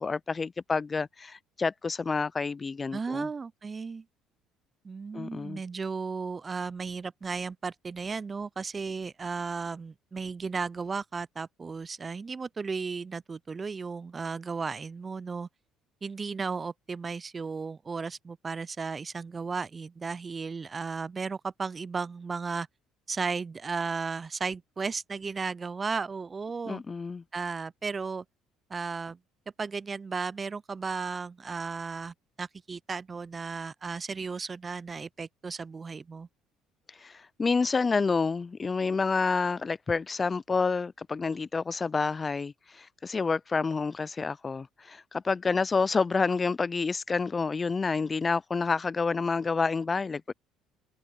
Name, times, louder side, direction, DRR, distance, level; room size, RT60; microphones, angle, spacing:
voice 1, 0.0-3.3 5.1-5.6 26.7-27.2 37.0-50.3, left 4 dB, 30° left, 0.6 m, -29 dB
voice 2, 2.9-4.0 4.8-15.5 16.0-22.7 23.1-26.8 27.3-28.2 28.7-29.2 29.6-36.3, right 4 dB, 30° right, 0.6 m, -35 dB
hypercardioid pair, 60°, 0 cm